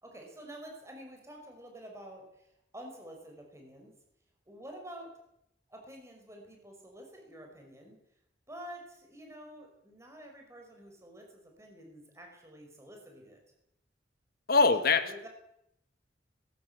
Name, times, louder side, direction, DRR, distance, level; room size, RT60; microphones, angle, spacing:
voice 1, 0.0-2.5 2.7-3.9 4.5-5.1 5.7-8.0 8.5-13.4 14.8-15.3, equal, 15° right, 2 dB, 5.7 m, -49 dB
voice 2, 14.5-15.3, left 4 dB, 55° left, 10 dB, 1.8 m, -24 dB
21.0 x 16.5 x 8.3 m, 0.78 s
head